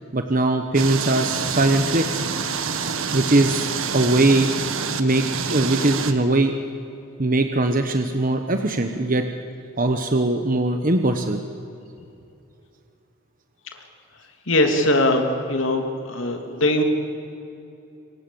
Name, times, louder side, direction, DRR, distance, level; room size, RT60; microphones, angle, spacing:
voice 1, 0.1-2.2 3.1-4.5 5.0-6.5 7.2-9.2 9.8-11.4, right 2 dB, 40° right, 6 dB, 1.2 m, -21 dB
sound 1, 0.7-6.1, right 6 dB, 80° right, 1.6 m, -27 dB
voice 2, 14.5-16.8, left 1 dB, 70° left, 4 dB, 2.8 m, -21 dB
26.5 x 23.5 x 7.1 m, 2.7 s
head